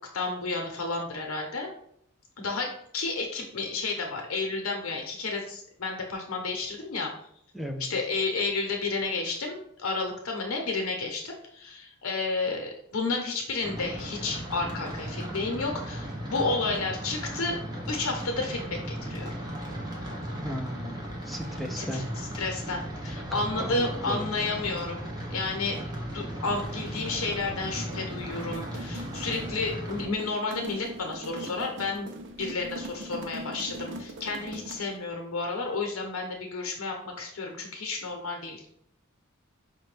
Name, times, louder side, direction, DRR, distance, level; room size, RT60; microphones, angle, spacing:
voice 1, 0.1-1.7 2.4-7.1 7.9-17.6 17.9-19.3 21.8-22.0 22.3-32.1 32.4-38.6, left 3 dB, 80° left, 2 dB, 0.6 m, -31 dB
voice 2, 7.5-7.9 20.4-21.0 21.2-22.1 23.1-23.2 23.6-24.3, equal, ahead, 3 dB, 0.3 m, -35 dB
sound 1, 13.6-30.1, right 1 dB, 20° right, 0.7 m, -36 dB
sound 2, 26.3-35.0, right 1 dB, 60° right, 0.5 m, -42 dB
5.0 x 2.2 x 3.2 m, 0.68 s
head